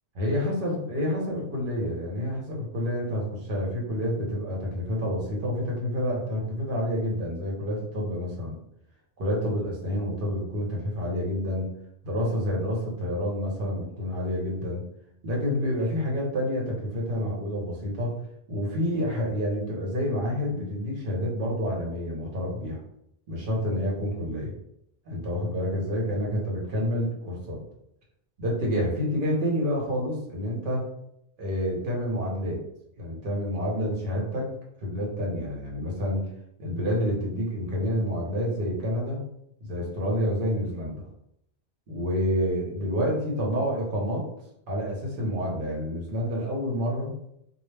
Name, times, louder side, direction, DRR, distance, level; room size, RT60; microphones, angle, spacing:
voice 1, 0.1-8.6 9.2-11.7 12.0-14.8 15.2-18.2 18.5-22.8 23.3-24.5 25.1-27.6 28.4-30.9 31.4-32.6 33.0-34.5 34.8-36.3 36.6-39.2 39.6-41.1 41.9-44.2 44.7-47.1, equal, 55° right, -2 dB, 0.9 m, -28 dB
2.2 x 2.0 x 3.2 m, 0.76 s
omnidirectional pair, 1.1 m